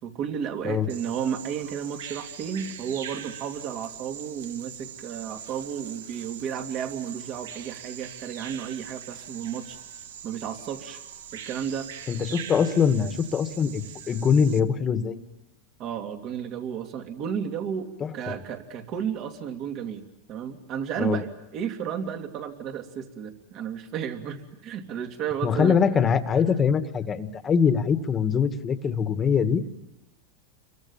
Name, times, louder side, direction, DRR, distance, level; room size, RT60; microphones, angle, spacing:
voice 1, 0.0-9.8 10.2-11.0 11.3-11.9 12.3-12.4 15.8-17.9 18.1-20.0 20.3-25.8 26.5-26.6, right 8 dB, 40° right, 5 dB, 2.9 m, -32 dB
Bird vocalization bird call bird song, 0.9-14.6, right 9 dB, 85° right, 1.6 m, -42 dB
voice 2, 12.1-15.2 18.0-18.4 21.0-21.2 25.4-29.6, left 6 dB, 25° left, 9 dB, 1.7 m, -23 dB
28.5 x 23.5 x 7.2 m, 0.97 s
supercardioid pair, 130°, 0 cm